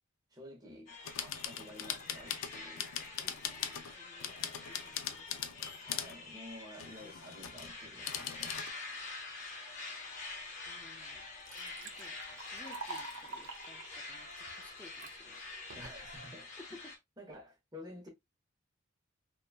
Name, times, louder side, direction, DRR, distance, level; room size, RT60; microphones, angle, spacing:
voice 1, 0.3-3.1 5.8-9.0 15.7-16.5 17.2-18.1, left 1 dB, 20° right, 1.0 m, -51 dB
sound 1, 0.9-17.0, left 3 dB, 35° left, 0.8 m, -47 dB
sound 2, 1.0-3.9 4.2-6.2 6.7-7.7 8.0-8.7, left 9 dB, 75° left, 0.4 m, -40 dB
voice 2, 3.2-5.9 10.7-11.3 11.6-12.2 12.5-15.4 15.7-15.9 16.7-16.8, left 2 dB, 5° left, 0.4 m, -58 dB
Liquid, 10.7-10.8 11.1-15.2 15.7-16.2, right 3 dB, 60° right, 0.6 m, -47 dB
3.0 x 2.2 x 2.3 m
head